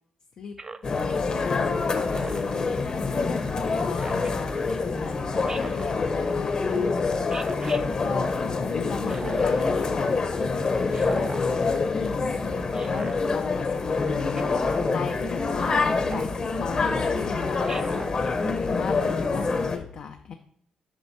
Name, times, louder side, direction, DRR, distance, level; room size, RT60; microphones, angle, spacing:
Speech synthesizer, 0.6-0.9 2.1-2.6 4.0-4.3 5.5-5.9 7.3-7.8 9.1-9.6 10.9-11.5 12.7-13.1 14.4-14.7 16.0-16.4 17.7-18.1, right 3 dB, 30° right, 0.4 m, -38 dB
sound 1, 0.8-19.8, left 4 dB, 40° left, 1.0 m, -26 dB
voice 1, 0.9-2.2 2.9-7.1 8.0-12.3 12.8-14.2 14.9-18.1 18.7-20.3, left 6 dB, 60° left, 5 dB, 0.6 m, -38 dB
7.8 x 5.4 x 4.2 m, 0.67 s
cardioid pair, 90°, 2 cm